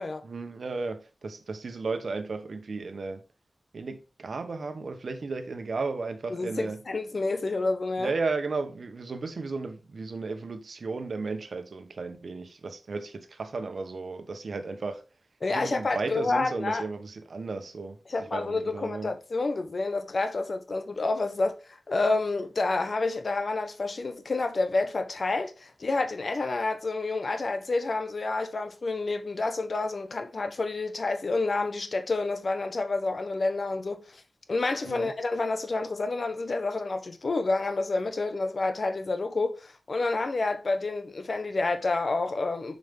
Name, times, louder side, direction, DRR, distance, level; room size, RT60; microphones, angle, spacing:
voice 1, 0.2-3.2 3.7-6.8 8.0-15.0 15.5-18.0 18.3-19.1 34.8-35.1, right 3 dB, 75° right, 1.1 m, -34 dB
voice 2, 6.3-8.1 15.4-16.8 18.1-34.2 34.5-42.8, left 3 dB, 60° left, 1.1 m, -29 dB
7.3 x 5.2 x 3.6 m
wide cardioid pair, 75°, 0 cm